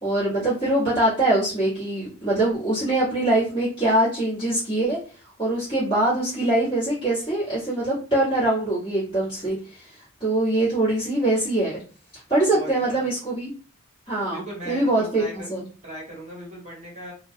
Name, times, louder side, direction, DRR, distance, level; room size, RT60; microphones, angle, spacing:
voice 1, 0.0-5.0 5.4-11.8 12.1-13.5 14.1-15.2 15.5-15.6, right 1 dB, 20° left, -12 dB, 1.2 m, -23 dB
voice 2, 12.5-13.1 14.2-15.5 15.8-17.1, equal, 30° right, -4 dB, 1.0 m, -38 dB
2.2 x 2.2 x 2.6 m, 0.38 s
head